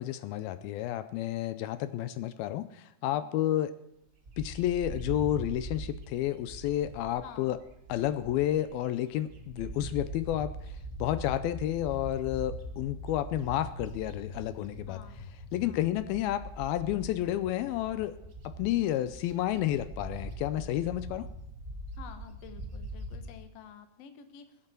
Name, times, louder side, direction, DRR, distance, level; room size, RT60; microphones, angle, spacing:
voice 1, 0.0-3.7 4.4-7.6 7.9-10.5 11.0-15.0 15.5-18.2 18.4-21.3, left 13 dB, 80° left, 13 dB, 2.4 m, -31 dB
Bird, 4.3-8.7 9.1-23.3, right 1 dB, 45° right, 1.1 m, -42 dB
voice 2, 7.2-7.6 14.9-15.3 15.6-15.8 22.0-24.5, left 8 dB, 60° left, 8 dB, 1.8 m, -50 dB
22.5 x 8.8 x 4.5 m, 0.80 s
omnidirectional pair, 4.4 m